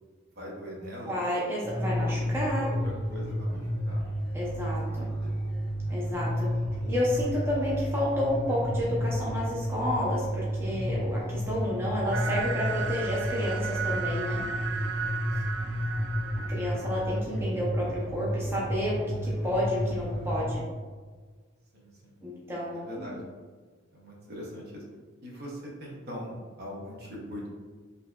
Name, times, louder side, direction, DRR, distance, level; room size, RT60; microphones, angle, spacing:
voice 1, 0.4-1.2 2.6-4.0 4.4-4.8 5.1-5.3 6.0-6.9 15.3-15.7 16.3-16.5 21.7-22.2 22.5-23.2 23.9-24.8 25.2-27.5, equal, 50° right, -3 dB, 0.7 m, -42 dB
voice 2, 1.1-2.7 4.3-5.1 5.9-6.5 6.9-14.4 16.5-20.6 22.2-23.2, left 1 dB, 10° right, -6 dB, 0.5 m, -31 dB
sound 1, 1.6-20.5, equal, 10° left, 1.2 m, -31 dB
sound 2, 12.1-17.2, right 5 dB, 70° right, 0.3 m, -35 dB
4.3 x 2.7 x 2.3 m, 1.5 s
head